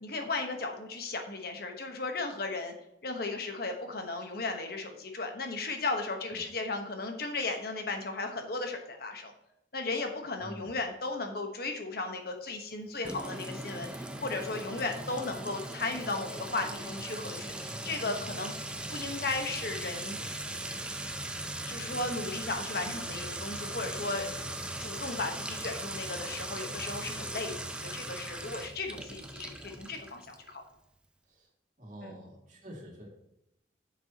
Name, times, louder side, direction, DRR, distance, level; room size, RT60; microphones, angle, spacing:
voice 1, 0.0-2.7 3.0-9.3 9.7-18.5 18.9-20.2 21.7-24.3 24.8-30.6, left 3 dB, 55° left, 4 dB, 1.2 m, -35 dB
voice 2, 10.4-10.7 31.2-31.5 31.8-33.1, equal, 45° right, -1 dB, 2.4 m, -47 dB
Sink (filling or washing) / Trickle dribble / Fill (with liquid), 13.0-30.5, right 1 dB, 5° right, 0.6 m, -39 dB
9.7 x 7.5 x 2.9 m, 0.83 s
head